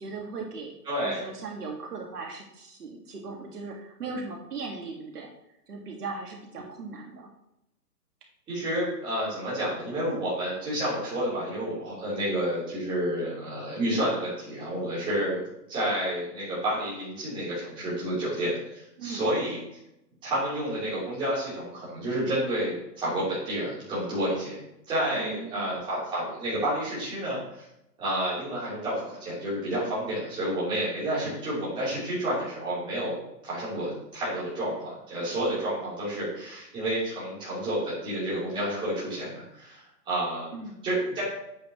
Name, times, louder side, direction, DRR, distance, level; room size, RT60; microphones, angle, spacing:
voice 1, 0.0-0.7 1.0-5.3 5.7-7.3 19.0-19.3 25.1-25.8 40.5-40.8, right 4 dB, 65° right, 0 dB, 2.0 m, -38 dB
voice 2, 0.9-1.3 8.5-15.4 15.7-19.6 20.2-24.6 24.9-27.6 28.0-33.2 33.4-40.5 40.8-41.2, right 1 dB, 10° right, -10 dB, 3.6 m, -30 dB
9.0 x 8.5 x 3.1 m, 0.82 s
hypercardioid pair, 165°, 50 cm